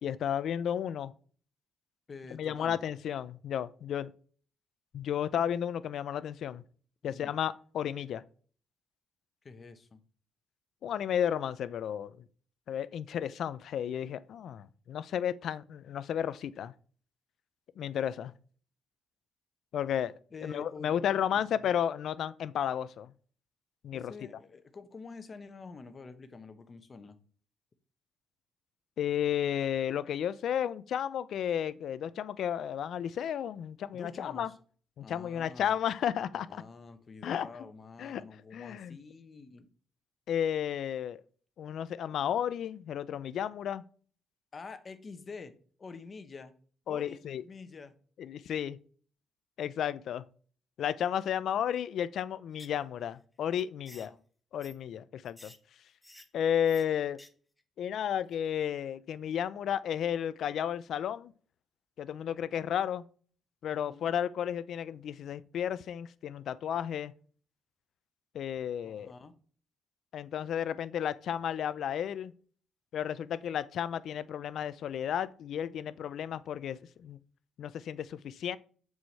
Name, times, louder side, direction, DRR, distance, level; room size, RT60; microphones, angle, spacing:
voice 1, 0.0-1.1 2.3-4.1 4.9-6.6 7.0-8.2 10.8-12.1 12.7-16.7 17.8-18.3 19.7-20.1 20.4-23.1 23.8-24.1 29.0-34.5 35.0-36.5 37.2-37.5 38.0-38.2 38.5-39.0 40.3-41.2 41.6-43.8 46.9-47.4 48.2-48.8 49.6-50.3 50.8-54.1 54.5-55.5 56.3-57.2 57.8-61.3 62.0-63.0 63.6-67.1 68.3-69.1 70.1-72.3 72.9-77.2 77.6-78.6, left 9 dB, 70° left, 0.4 m, -33 dB
voice 2, 2.1-2.8 7.1-7.3 9.4-10.0 20.3-21.7 23.9-27.2 33.9-34.6 35.0-35.7 36.3-39.7 44.5-46.5 46.9-47.9 53.8-54.2 63.7-64.1 68.8-69.3, left 4 dB, 35° left, 1.0 m, -47 dB
sound 1, 52.5-52.8 53.1-53.2 53.6-54.1 54.6-54.8 55.3-55.6 56.0-56.3 56.7-56.8 57.1-57.3 57.6-57.7, left 1 dB, 10° left, 0.8 m, -52 dB
7.6 x 4.8 x 4.1 m
cardioid pair, 90°, 0 cm